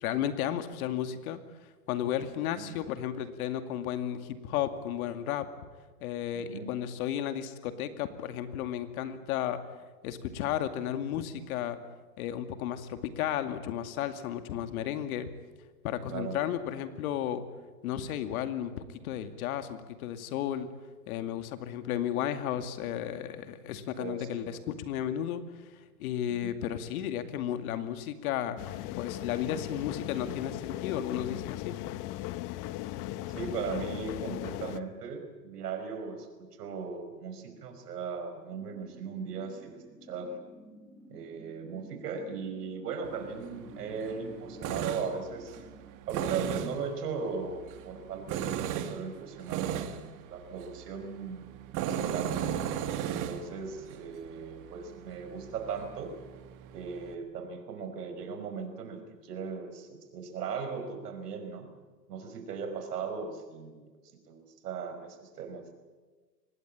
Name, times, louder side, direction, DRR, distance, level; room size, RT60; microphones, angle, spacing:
voice 1, 0.0-1.4 1.9-5.5 6.0-9.6 10.0-11.8 12.2-15.3 15.8-17.4 17.8-20.7 21.1-25.7 26.0-28.6 29.0-31.8, left 10 dB, 60° left, 9 dB, 2.4 m, -33 dB
voice 2, 6.3-6.7 16.1-16.4 24.0-24.8 26.3-26.5 33.3-40.3 41.1-45.6 46.1-51.4 51.7-52.4 53.0-56.1 56.7-61.7 62.1-63.8 64.3-65.7, right 5 dB, 70° right, 7 dB, 5.5 m, -38 dB
sound 1, 28.6-34.8, left 15 dB, 40° left, 1.1 m, -38 dB
sound 2, 38.5-45.8, right 1 dB, 5° right, 7.7 m, -52 dB
Tools, 43.0-57.1, right 9 dB, 40° right, 2.0 m, -37 dB
24.5 x 20.0 x 8.8 m, 1.3 s
hypercardioid pair, 110°, 48 cm